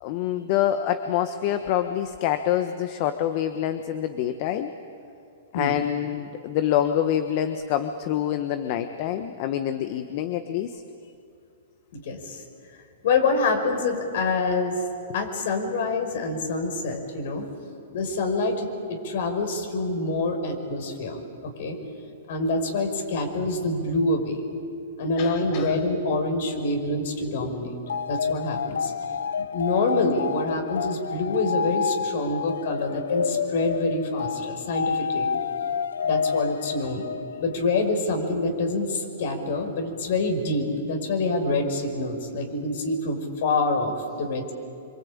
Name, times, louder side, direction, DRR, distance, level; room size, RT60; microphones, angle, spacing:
voice 1, 0.0-4.7 5.5-10.8 25.2-25.7 27.4-27.5, left 11 dB, 45° left, 8 dB, 1.3 m, -26 dB
voice 2, 11.9-12.4 13.0-14.8 15.1-17.4 17.9-21.8 22.3-24.4 25.0-27.8 28.1-28.9 29.4-35.3 36.0-37.0 37.4-44.5, left 2 dB, 65° left, 4 dB, 5.6 m, -26 dB
sound 1, 27.9-37.6, left 6 dB, 80° left, 0.7 m, -29 dB
26.0 x 25.0 x 8.9 m, 2.5 s
hypercardioid pair, 125°, 0 cm